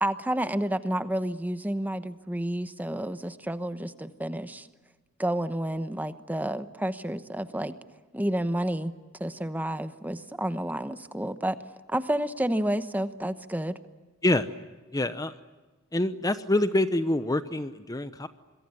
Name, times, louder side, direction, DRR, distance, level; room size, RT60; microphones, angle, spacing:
voice 1, 0.0-4.7 5.2-7.7 8.1-8.9 9.2-11.6 11.9-13.8, right 1 dB, 10° right, 11 dB, 1.0 m, -30 dB
voice 2, 14.9-15.4 15.9-18.3, left 1 dB, 15° left, 11 dB, 0.8 m, -26 dB
27.0 x 22.5 x 9.7 m, 1.2 s
head